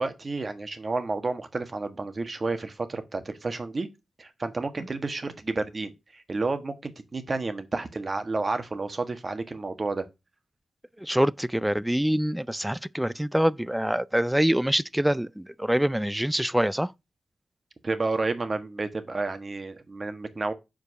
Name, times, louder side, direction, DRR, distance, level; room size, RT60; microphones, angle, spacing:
voice 1, 0.0-3.9 4.2-10.0 17.8-20.5, right 3 dB, 45° right, 1.4 m, -31 dB
voice 2, 11.0-16.9, equal, 5° right, 0.4 m, -25 dB
5.0 x 4.6 x 5.9 m
cardioid pair, 45°, 0 cm